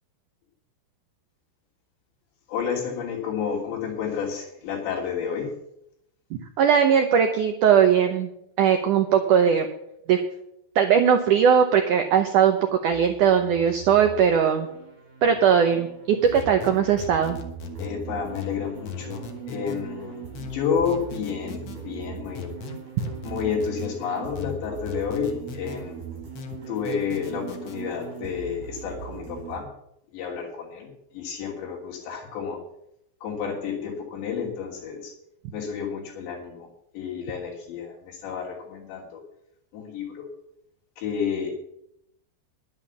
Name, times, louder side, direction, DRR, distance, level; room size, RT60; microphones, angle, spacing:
voice 1, 2.5-5.6 17.8-22.5 23.2-26.0 26.7-29.7 30.1-32.6 33.2-35.1 35.5-36.7 36.9-39.2 39.7-40.2 41.0-41.5, left 6 dB, 85° left, -2 dB, 5.3 m, -30 dB
voice 2, 6.6-8.3 8.6-9.7 10.1-10.2 10.8-12.6 12.8-14.7 15.2-17.4, right 7 dB, 80° right, 5 dB, 1.8 m, -19 dB
sound 1, 12.9-29.6, right 7 dB, 40° right, 6.2 m, -41 dB
sound 2, 16.3-17.9 18.3-19.8 20.3-21.8 22.3-23.9 24.3-25.8 26.3-27.8, left 4 dB, 65° left, 1.6 m, -37 dB
11.0 x 9.8 x 7.1 m, 0.78 s
omnidirectional pair, 4.9 m